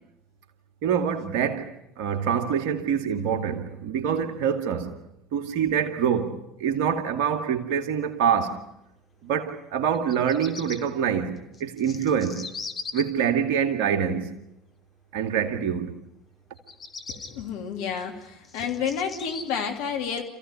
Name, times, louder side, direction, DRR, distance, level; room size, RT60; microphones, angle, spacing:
voice 1, 0.8-1.7 2.0-4.9 5.3-8.6 9.2-11.3 11.6-12.4 12.9-14.3 15.1-16.0, right 8 dB, 65° right, 2.2 m, -25 dB
Bird vocalization bird call bird song, 9.9-10.8 11.5-13.0 16.6-17.3 18.0-19.4, left 5 dB, 35° left, 3.0 m, -38 dB
voice 2, 17.1-20.2, left 7 dB, 70° left, 2.9 m, -30 dB
28.0 x 15.5 x 9.8 m
hypercardioid pair, 65°, 0 cm